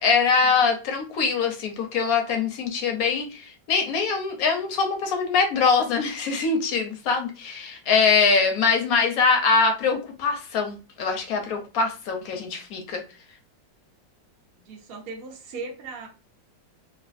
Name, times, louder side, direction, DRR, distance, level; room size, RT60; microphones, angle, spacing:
voice 1, 0.0-13.0, left 5 dB, 70° left, 4 dB, 0.9 m, -23 dB
voice 2, 14.7-16.1, right 4 dB, 55° right, 1 dB, 0.6 m, -37 dB
3.2 x 2.3 x 2.4 m, 0.33 s
omnidirectional pair, 2.0 m